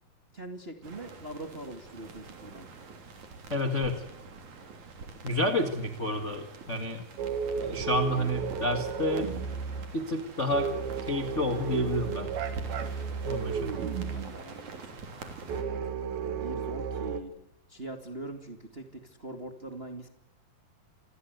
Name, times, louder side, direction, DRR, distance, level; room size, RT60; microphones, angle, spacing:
voice 1, 0.3-2.7 14.1-17.3 17.7-20.1, right 1 dB, 25° right, 5 dB, 1.3 m, -43 dB
sound 1, 0.8-15.6, right 4 dB, 45° right, 4.3 m, -46 dB
voice 2, 3.5-4.0 5.2-7.0 7.6-9.3 9.9-10.7 11.1-12.3 13.2-13.7, left 1 dB, 65° left, 6 dB, 0.7 m, -29 dB
sound 2, 7.2-9.9 10.5-14.3 15.5-17.2, right 6 dB, 65° right, 3.5 m, -33 dB
28.0 x 21.5 x 8.2 m, 0.71 s
omnidirectional pair, 5.0 m